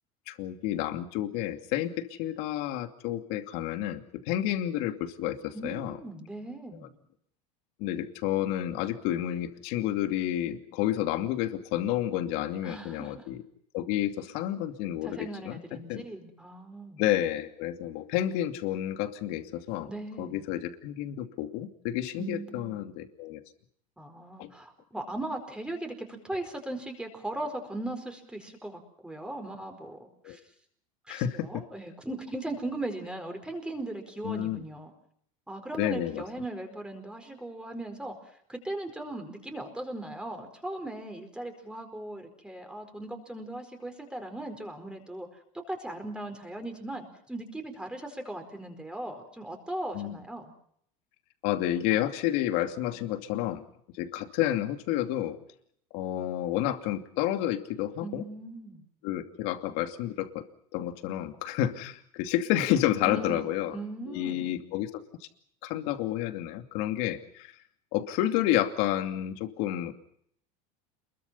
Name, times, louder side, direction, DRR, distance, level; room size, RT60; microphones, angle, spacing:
voice 1, 0.3-6.0 7.8-13.4 13.7-16.0 17.0-19.9 20.2-23.4 24.4-24.5 30.2-30.4 31.1-31.6 34.2-34.6 35.8-36.2 49.9-50.2 51.4-53.6 53.9-55.4 55.9-58.2 59.0-60.4 60.7-63.8 64.1-65.0 65.6-67.6 67.9-69.9, left 12 dB, 65° left, 7 dB, 2.6 m, -30 dB
voice 2, 5.5-7.0 12.6-13.3 15.0-17.0 19.9-20.4 22.2-22.8 24.0-30.4 31.1-34.9 35.5-45.3 45.7-50.5 52.9-53.1 58.0-58.8 63.0-64.6, right 1 dB, 5° right, 5 dB, 4.6 m, -38 dB
28.0 x 22.0 x 5.7 m, 0.68 s
supercardioid pair, 140°, 17 cm